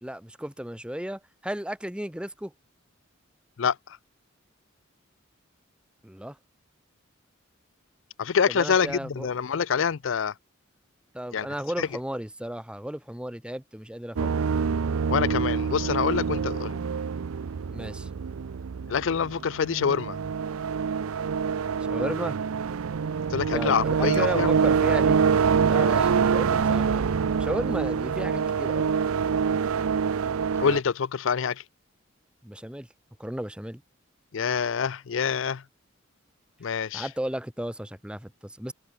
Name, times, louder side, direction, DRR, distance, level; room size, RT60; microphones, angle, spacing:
voice 1, 0.0-2.5 6.0-6.4 8.5-9.3 11.1-14.3 17.7-18.1 21.8-22.4 23.5-25.2 25.6-28.9 32.4-32.9 33.2-33.8 36.9-38.7, equal, 5° right, 1.3 m, -34 dB
voice 2, 3.6-4.0 8.2-10.3 11.3-11.5 11.8-11.9 15.1-16.8 18.9-20.2 23.3-24.5 30.6-31.6 34.3-35.6 36.6-37.1, left 6 dB, 65° left, 0.5 m, -26 dB
sound 1, 14.2-30.8, right 6 dB, 90° right, 0.5 m, -25 dB
head